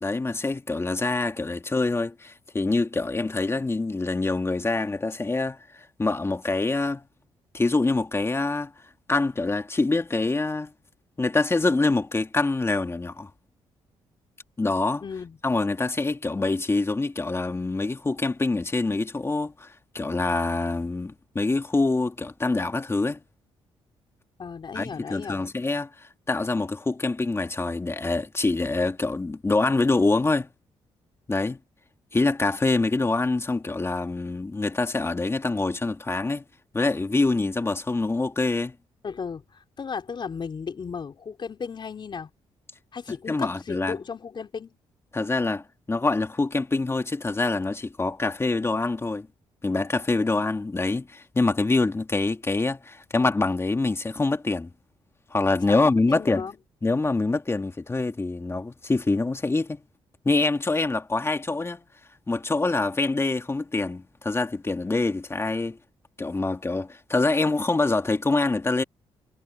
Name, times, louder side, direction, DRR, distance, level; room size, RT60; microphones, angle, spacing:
voice 1, 0.0-7.0 7.5-8.7 9.1-10.7 11.2-13.3 14.6-15.0 15.4-23.2 24.7-30.5 31.3-31.6 32.1-36.4 36.7-38.7 43.3-44.0 45.1-49.3 49.6-54.7 55.3-56.4 56.8-59.8 60.3-61.8 62.3-65.8 66.2-68.8, left 3 dB, 25° left, 2.0 m, -25 dB
voice 2, 15.0-15.4 24.4-25.4 39.0-42.3 42.9-44.7 55.7-56.6, left 6 dB, 45° left, 3.8 m, -35 dB
cardioid pair, 70°, 11 cm